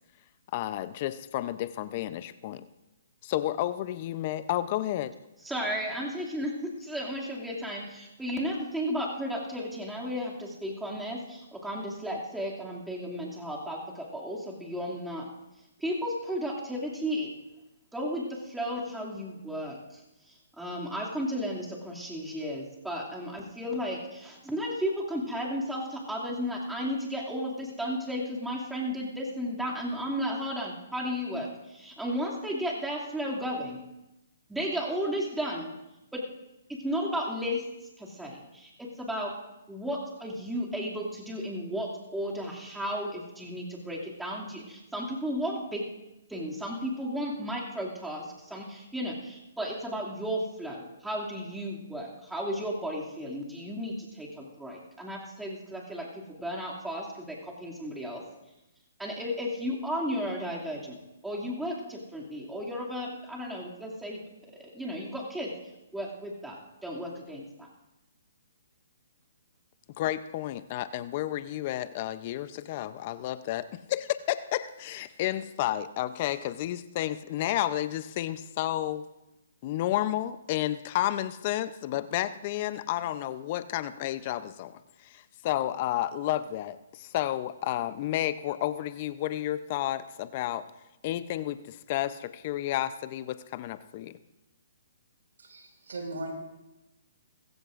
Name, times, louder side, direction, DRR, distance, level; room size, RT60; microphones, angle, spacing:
voice 1, 0.5-2.6 3.2-5.1 70.0-79.1 79.6-90.7 91.0-94.2, left 13 dB, 40° left, 14 dB, 0.5 m, -31 dB
voice 2, 5.4-15.3 15.8-17.3 17.9-20.0 20.6-33.8 34.5-35.7 36.1-36.2 36.7-37.6 38.0-39.3 39.7-45.8 46.3-58.2 59.0-61.0 61.2-64.2 64.5-65.5 65.9-66.6 66.8-67.7, equal, 5° right, -4 dB, 2.4 m, -34 dB
voice 3, 95.4-96.3, right 2 dB, 80° right, 2 dB, 4.7 m, -38 dB
20.5 x 16.0 x 2.5 m, 0.96 s
hypercardioid pair, 145°, 0 cm